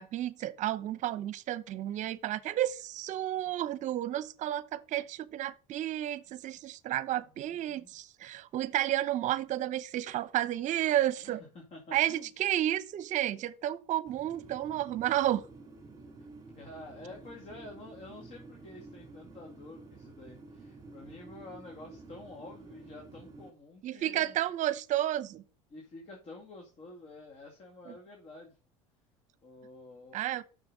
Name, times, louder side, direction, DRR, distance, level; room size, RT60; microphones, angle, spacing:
voice 1, 0.0-11.4 11.9-15.4 23.8-25.4 27.9-28.0 30.1-30.4, right 13 dB, 50° right, 0.8 m, -31 dB
voice 2, 7.1-7.9 11.2-12.3 16.5-24.4 25.7-28.6 29.4-30.2, left 2 dB, 45° left, 2.3 m, -49 dB
sound 1, 14.1-23.5, right 3 dB, 25° right, 2.4 m, -51 dB
6.9 x 6.6 x 3.9 m
supercardioid pair, 85°, 16 cm